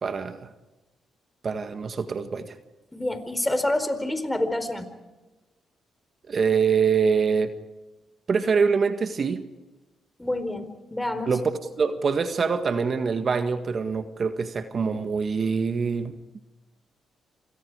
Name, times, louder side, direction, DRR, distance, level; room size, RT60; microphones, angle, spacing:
voice 1, 0.0-0.4 1.4-2.5 6.3-7.5 8.3-9.4 11.3-11.5 11.8-16.1, right 5 dB, 50° right, 8 dB, 1.7 m, -24 dB
voice 2, 2.9-4.9 10.2-11.3, left 1 dB, 10° left, 9 dB, 4.6 m, -27 dB
28.5 x 26.5 x 4.9 m, 1.1 s
supercardioid pair, 55°, 0 cm